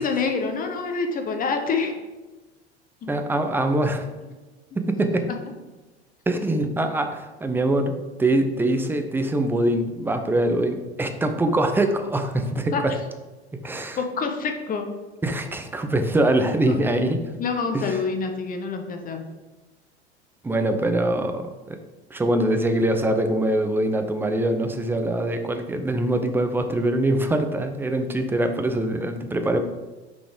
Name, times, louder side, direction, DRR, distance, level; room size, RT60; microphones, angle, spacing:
voice 1, 0.0-2.0 3.0-3.1 4.9-5.0 12.7-12.8 14.0-14.9 16.7-16.8 17.4-19.2, left 4 dB, 25° left, 5 dB, 1.0 m, -26 dB
voice 2, 3.1-4.1 4.8-5.3 6.3-12.9 13.6-14.0 15.2-17.2 17.7-18.0 20.4-21.8 22.1-29.6, right 1 dB, 5° right, 6 dB, 0.5 m, -23 dB
6.3 x 4.0 x 5.0 m, 1.2 s
figure-of-eight pair, 75°, 33 cm